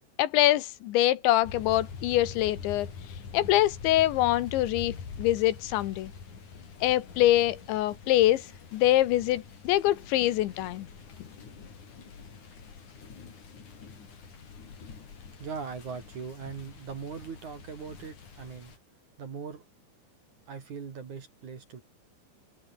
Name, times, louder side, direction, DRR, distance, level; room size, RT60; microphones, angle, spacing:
voice 1, 0.2-2.9 3.3-6.1 6.8-8.4 8.7-10.9, left 14 dB, 75° left, 3.1 m, -24 dB
sound 1, 1.4-18.8, left 5 dB, 40° left, 4.9 m, -45 dB
voice 2, 15.4-18.7 19.2-19.6 20.5-21.8, right 6 dB, 45° right, 3.4 m, -40 dB
omnidirectional pair, 6.0 m